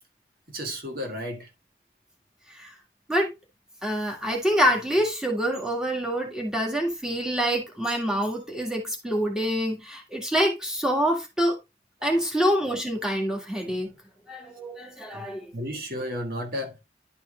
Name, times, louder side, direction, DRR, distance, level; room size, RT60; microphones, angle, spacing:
voice 1, 0.5-1.5 12.1-12.2 15.1-16.8, equal, 55° right, 1.7 m, -33 dB
voice 2, 3.8-11.6 12.0-13.9 14.3-15.5, equal, 5° right, 1.7 m, -26 dB
11.0 x 4.6 x 3.2 m
head